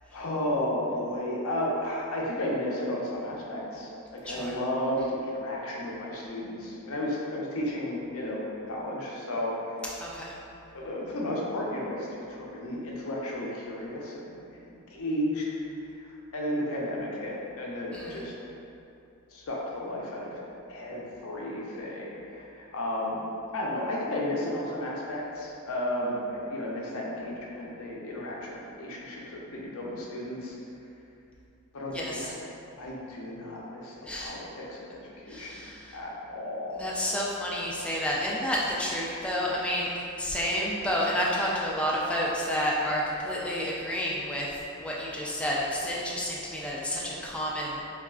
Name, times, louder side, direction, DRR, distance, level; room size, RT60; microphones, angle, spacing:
voice 1, 0.1-9.5 10.7-14.4 14.7-15.5 16.0-18.3 19.3-20.4 20.7-23.2 23.5-30.6 31.7-32.3 32.8-35.7 35.9-36.9, left 1 dB, 70° left, -3 dB, 0.6 m, -33 dB
voice 2, 10.0-10.4 17.9-18.2 31.9-32.3 34.0-34.3 35.3-36.0 36.7-39.9 40.2-47.8, equal, 5° left, -5 dB, 0.3 m, -30 dB
3.9 x 2.4 x 2.3 m, 2.7 s
head